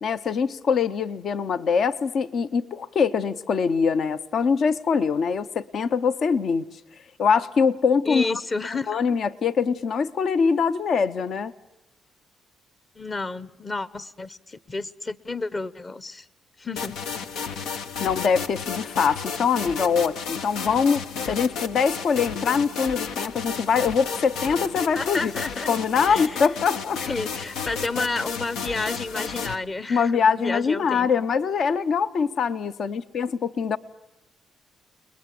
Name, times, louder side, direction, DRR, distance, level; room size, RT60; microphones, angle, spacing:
voice 1, 0.0-6.6 7.2-8.3 8.9-11.5 18.0-25.3 25.7-27.0 29.9-33.8, left 6 dB, 60° left, 13 dB, 0.9 m, -23 dB
voice 2, 8.1-9.0 13.0-16.3 16.6-17.0 24.9-25.7 26.1-26.5 27.0-31.1, left 3 dB, 30° left, 17 dB, 1.0 m, -31 dB
sound 1, 16.8-29.6, left 6 dB, 90° left, 1.3 m, -32 dB
29.5 x 21.0 x 7.8 m, 0.90 s
cardioid pair, 90°, 0 cm